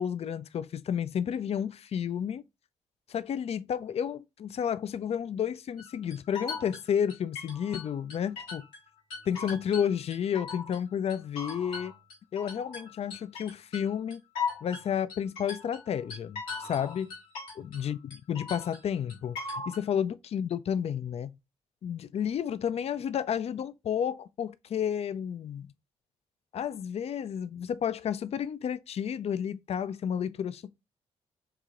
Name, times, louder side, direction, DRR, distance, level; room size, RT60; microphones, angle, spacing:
voice 1, 0.0-2.4 3.1-8.7 9.3-11.9 12.3-14.2 14.6-17.1 17.6-18.0 18.3-21.4 21.8-25.7 26.5-30.7, left 8 dB, 45° left, 0.4 m, -31 dB
sound 1, 5.8-8.8 9.1-10.8 11.1-17.9 18.1-19.8, left 5 dB, 85° left, 1.5 m, -39 dB
4.7 x 2.7 x 2.4 m
hypercardioid pair, 45°, 15 cm